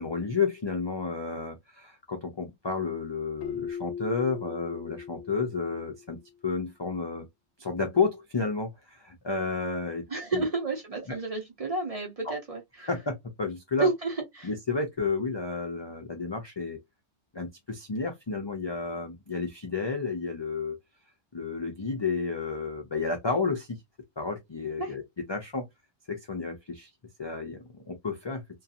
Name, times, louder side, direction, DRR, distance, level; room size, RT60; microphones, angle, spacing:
voice 1, 0.0-7.3 7.6-10.0 10.3-10.5 11.1-11.2 12.2-12.3 12.8-13.9 14.4-16.8 17.3-20.8 21.3-23.8 24.2-25.0 25.3-25.7 26.1-26.9 27.2-27.6 27.9-28.4, left 4 dB, 45° left, 0.3 m, -31 dB
Keyboard (musical), 3.4-6.2, left 7 dB, 75° left, 0.9 m, -39 dB
voice 2, 10.1-12.9 13.8-14.5 24.8-24.9, right 3 dB, 40° right, 0.6 m, -31 dB
2.7 x 2.3 x 2.4 m
omnidirectional pair, 1.1 m